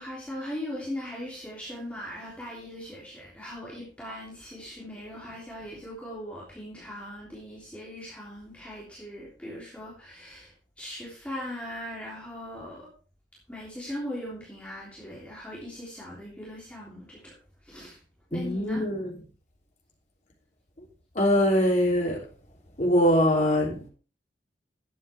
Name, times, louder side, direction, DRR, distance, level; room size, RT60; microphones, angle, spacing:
voice 1, 0.0-12.9 13.5-17.3 17.6-18.0 18.3-18.8, left 1 dB, 10° left, 3.3 m, -39 dB
voice 2, 18.3-19.1 21.1-22.2 22.8-23.8, equal, 45° left, 3.3 m, -23 dB
12.0 x 8.9 x 3.5 m
head